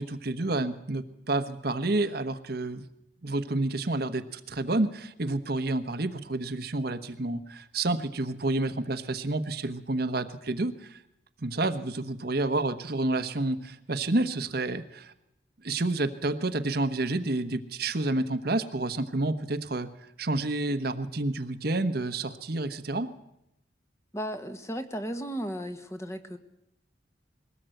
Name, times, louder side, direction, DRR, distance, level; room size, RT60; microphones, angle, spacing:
voice 1, 0.0-2.9 3.2-11.0 11.4-15.1 15.6-19.9 20.2-23.1, right 2 dB, 55° right, 9 dB, 1.2 m, -29 dB
voice 2, 24.1-26.4, equal, 15° left, 7 dB, 1.4 m, -35 dB
21.5 x 18.0 x 7.9 m, 0.83 s
head